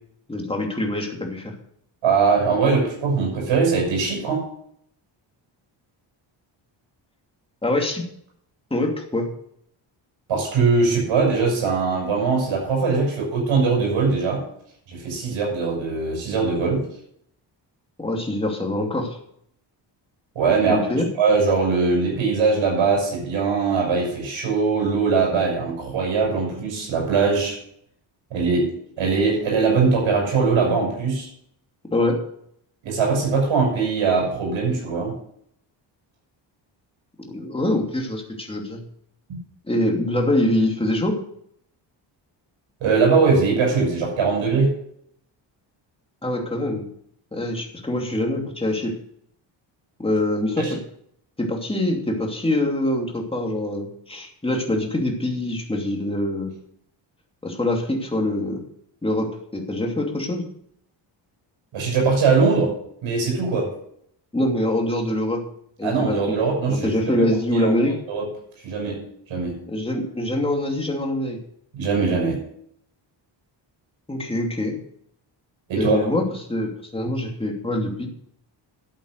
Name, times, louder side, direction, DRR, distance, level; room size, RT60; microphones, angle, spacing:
voice 1, 0.3-1.5 7.6-8.0 8.7-9.3 18.0-19.2 20.7-21.1 31.9-32.2 37.2-38.8 39.7-41.2 46.2-46.9 47.3-48.9 50.0-50.8 51.4-56.5 57.4-58.6 59.0-60.4 64.3-65.4 65.8-66.2 66.7-67.9 69.7-71.4 74.1-74.7 75.8-76.2 76.5-78.1, left 1 dB, 10° left, 1 dB, 2.7 m, -24 dB
voice 2, 2.0-4.4 10.3-14.4 14.9-16.9 20.3-20.8 21.2-27.6 28.3-31.3 32.8-35.1 42.8-44.7 50.6-50.7 61.7-62.7 63.0-63.7 65.8-67.3 67.5-67.7 68.1-68.3 68.6-69.0 69.3-69.6 71.7-72.4 75.7-76.1, right 4 dB, 80° right, -1 dB, 6.4 m, -21 dB
12.0 x 8.4 x 6.6 m, 0.69 s
cardioid pair, 130°, 46 cm